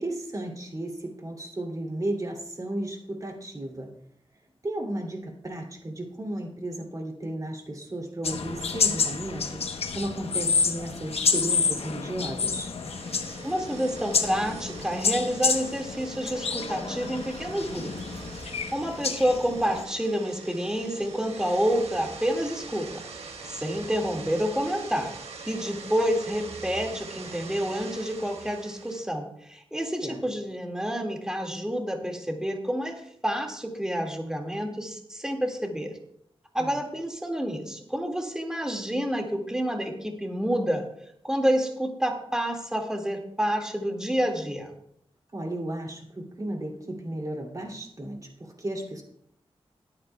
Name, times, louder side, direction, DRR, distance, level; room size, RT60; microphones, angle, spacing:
voice 1, 0.0-3.9 4.6-12.7 30.0-30.2 36.6-36.8 45.3-49.0, right 1 dB, 35° right, 0 dB, 2.7 m, -34 dB
sound 1, 8.2-19.8, left 5 dB, 75° left, 0.9 m, -29 dB
sound 2, 12.5-29.0, right 4 dB, 90° right, 1.4 m, -43 dB
voice 2, 13.4-17.9 18.7-23.0 23.4-25.1 25.5-36.0 36.5-40.9 41.2-44.7, equal, 5° right, 2 dB, 2.0 m, -28 dB
22.5 x 8.8 x 2.3 m, 0.72 s
wide cardioid pair, 90°, 10 cm